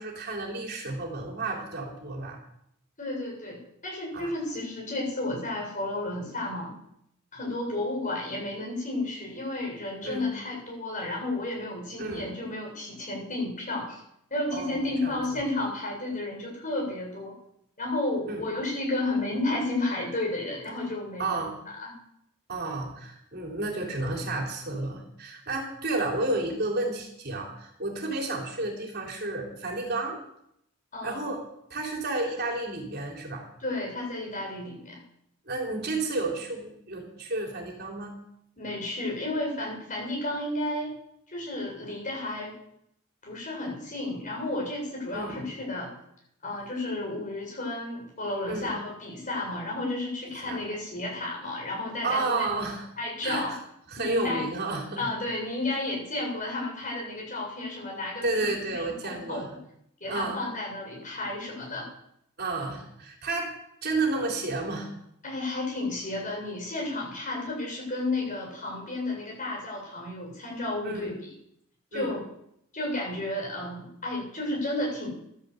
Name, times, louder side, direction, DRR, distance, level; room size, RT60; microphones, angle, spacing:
voice 1, 0.0-2.4 4.1-4.3 10.0-10.2 12.0-12.3 14.5-15.2 18.3-18.4 21.2-21.6 22.5-30.2 31.0-31.4 31.7-33.5 35.5-38.1 45.1-45.4 48.5-48.7 50.5-50.6 52.0-52.9 53.2-53.6 53.9-55.1 58.2-59.5 60.1-60.4 62.4-63.5 63.8-64.9 70.8-71.1 71.9-72.1, right 2 dB, 50° right, 1 dB, 3.5 m, -31 dB
voice 2, 3.0-6.7 7.3-14.0 14.3-17.3 17.8-21.3 21.8-21.9 30.9-31.3 33.6-35.0 38.6-40.9 41.3-42.6 43.2-45.9 46.4-52.5 53.0-53.5 54.0-54.4 55.0-58.5 58.7-59.5 60.0-61.8 65.2-71.1 71.9-72.2 72.7-75.1, left 2 dB, 40° left, -2 dB, 7.8 m, -32 dB
13.5 x 10.5 x 8.4 m, 0.76 s
head